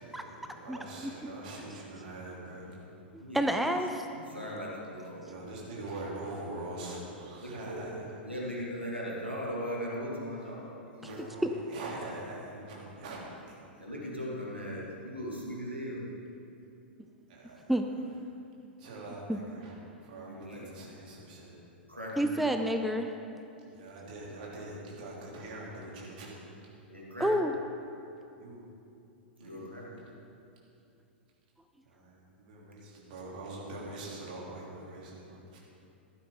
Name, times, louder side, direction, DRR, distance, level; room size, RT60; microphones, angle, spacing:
voice 1, 0.0-2.7 5.3-8.2 8.5-8.6 11.0-13.2 13.5-13.6 17.3-18.2 18.8-21.5 23.6-26.4 28.4-28.6 29.4-29.9 31.8-35.4, right 2 dB, 50° right, -4 dB, 3.4 m, -43 dB
voice 2, 0.7-1.1 3.1-4.1 11.4-11.5 17.7-17.9 19.3-19.4 22.2-23.1 27.2-27.5, right 1 dB, ahead, 5 dB, 0.5 m, -29 dB
voice 3, 3.2-3.6 4.1-5.3 7.4-7.9 8.2-10.8 13.8-16.0 20.2-20.7 21.9-22.3 26.9-27.4 29.4-30.0, equal, 90° right, -4 dB, 2.6 m, -38 dB
15.0 x 12.0 x 3.9 m, 2.7 s
figure-of-eight pair, 100°, 6 cm